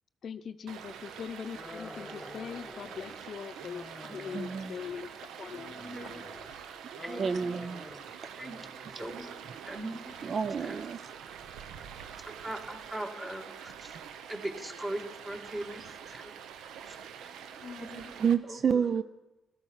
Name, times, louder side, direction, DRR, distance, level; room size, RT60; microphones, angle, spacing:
voice 1, 0.2-5.1 5.4-6.2 17.6-18.1, left 7 dB, 55° left, 12 dB, 0.6 m, -42 dB
Stream, 0.7-18.3, right 8 dB, 85° right, 1.0 m, -46 dB
sound 1, 1.5-3.2 3.6-5.1 5.5-6.5 6.9-8.1 8.4-9.1, left 1 dB, 10° left, 1.6 m, -48 dB
voice 2, 4.1-4.8 7.2-7.9 8.2-8.3 10.2-11.0 15.6-15.7 17.2-17.3 18.2-19.0, right 6 dB, 45° right, 12 dB, 0.5 m, -30 dB
voice 3, 5.5-6.2 7.0-7.4 7.9-8.1 8.4-8.6 9.0-9.3 9.6-10.3 10.6-10.8 12.4-13.9 14.3-16.3 16.9-17.0 17.9-18.9, right 1 dB, 15° right, 3 dB, 2.4 m, -40 dB
16.5 x 13.5 x 5.7 m, 1.1 s
cardioid pair, 90°, 0 cm